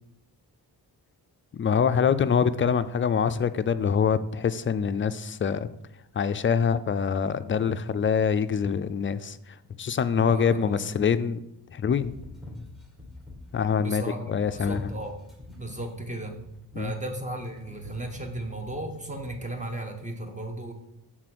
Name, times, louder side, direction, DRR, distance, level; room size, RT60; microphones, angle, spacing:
voice 1, 1.5-5.7 6.1-11.4 11.7-12.1 13.5-14.9 16.8-16.9, left 6 dB, 30° left, 12 dB, 0.4 m, -25 dB
voice 2, 10.2-10.9 13.8-15.2 15.5-16.4 16.7-20.7, right 1 dB, 20° right, 4 dB, 1.2 m, -35 dB
sound 1, 12.0-13.7 14.4-19.8, left 2 dB, ahead, 1.4 m, -46 dB
6.6 x 3.8 x 6.0 m, 0.81 s
cardioid pair, 95°, 40 cm